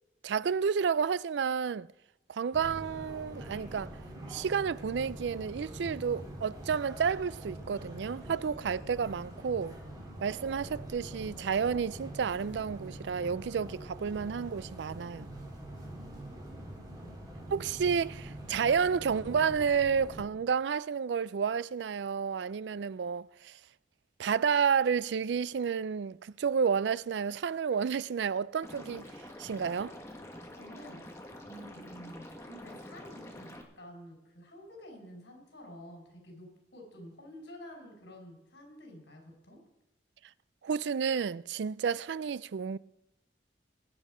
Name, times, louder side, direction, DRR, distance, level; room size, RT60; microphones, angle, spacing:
voice 1, 0.2-1.9 2.3-3.9 4.3-9.8 10.2-15.4 17.5-23.5 24.2-29.0 29.4-29.9 40.6-42.8, right 6 dB, 80° right, 0.4 m, -31 dB
sound 1, 2.5-20.3, right 1 dB, 20° right, 3.5 m, -44 dB
voice 2, 15.9-17.3 30.4-31.0 31.4-39.6, equal, 85° left, 4.6 m, -50 dB
Liquid, 28.6-33.6, left 1 dB, 15° left, 1.6 m, -47 dB
20.5 x 8.6 x 5.0 m
head